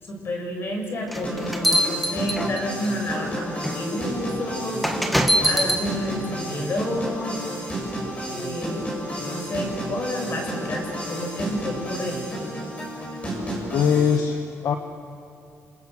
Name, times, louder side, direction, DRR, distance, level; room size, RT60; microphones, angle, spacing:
voice 1, 0.0-4.9 5.4-7.4 8.2-8.9 9.2-12.3, left 1 dB, 40° left, 2 dB, 6.4 m, -30 dB
sound 1, 1.1-2.9 3.6-3.8 4.8-5.8, equal, ahead, 1.9 m, -22 dB
sound 2, 1.2-14.2, right 1 dB, 25° left, 7.9 m, -31 dB
voice 2, 13.7-14.8, left 7 dB, 65° left, 5 dB, 1.4 m, -21 dB
29.0 x 26.0 x 7.9 m, 2.6 s
cardioid pair, 135°, 6 cm